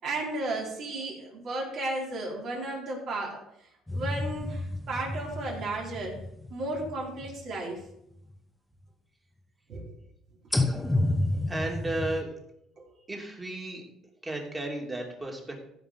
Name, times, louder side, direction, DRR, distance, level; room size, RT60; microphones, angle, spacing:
voice 1, 0.0-3.4 3.9-6.1 6.5-7.8 9.7-9.9 12.9-13.0, right 2 dB, 55° right, -2 dB, 4.5 m, -34 dB
sound 1, 3.9-7.9 8.3-8.4 10.5-12.2, left 2 dB, 5° left, 1.0 m, -31 dB
voice 2, 11.5-12.3 13.1-13.8 14.2-15.6, right 1 dB, 15° right, 0 dB, 2.8 m, -34 dB
15.5 x 5.3 x 5.5 m, 0.78 s
cardioid pair, 115°, 0 cm